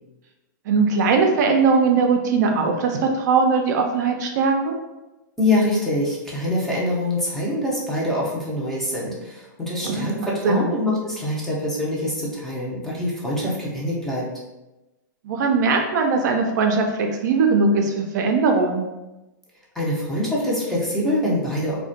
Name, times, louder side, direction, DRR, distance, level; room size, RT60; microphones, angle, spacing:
voice 1, 0.7-4.8 9.8-10.7 15.2-18.8, right 4 dB, 60° right, 3 dB, 0.4 m, -20 dB
voice 2, 5.4-14.3 19.7-21.8, left 1 dB, 5° left, -6 dB, 0.5 m, -24 dB
2.3 x 2.1 x 2.6 m, 1.0 s
hypercardioid pair, 135°, 11 cm